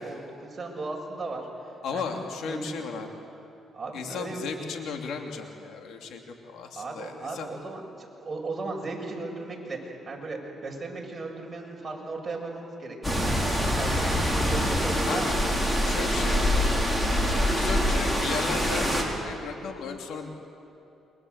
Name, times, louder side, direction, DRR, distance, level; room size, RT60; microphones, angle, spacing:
voice 1, 0.0-1.5 1.9-2.1 2.5-2.8 3.7-4.4 6.8-15.4 15.9-16.3, right 3 dB, 30° right, -1 dB, 6.7 m, -36 dB
voice 2, 1.8-3.1 3.9-7.5 14.0-14.1 15.0-15.4 15.8-16.6 17.5-20.3, left 5 dB, 80° left, 3 dB, 2.8 m, -35 dB
sound 1, 13.0-19.0, equal, 10° left, 5.4 m, -25 dB
28.5 x 23.5 x 8.2 m, 2.8 s
cardioid pair, 90°, 0 cm